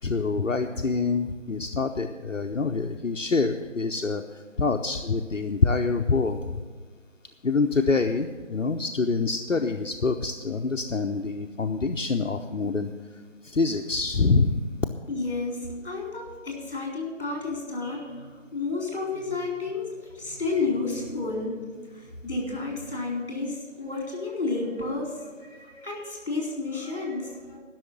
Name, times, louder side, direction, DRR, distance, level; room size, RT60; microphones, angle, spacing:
voice 1, 0.0-6.6 7.4-12.9 13.4-14.7, left 4 dB, 75° left, 4 dB, 0.8 m, -26 dB
voice 2, 15.1-21.6 21.9-27.6, left 3 dB, 45° left, -1 dB, 4.2 m, -31 dB
12.0 x 6.4 x 9.2 m, 1.5 s
figure-of-eight pair, 160°, 38 cm